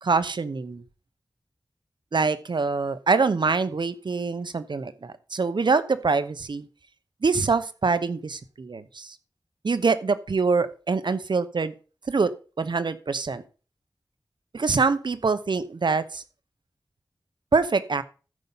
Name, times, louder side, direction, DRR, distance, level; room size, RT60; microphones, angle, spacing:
voice 1, 0.0-0.8 2.1-6.7 7.2-9.1 9.6-11.7 12.1-12.3 12.6-13.4 14.5-16.2 17.5-18.0, right 4 dB, 75° right, 13 dB, 0.9 m, -24 dB
14.0 x 5.4 x 5.6 m, 0.36 s
wide cardioid pair, 75°, 8 cm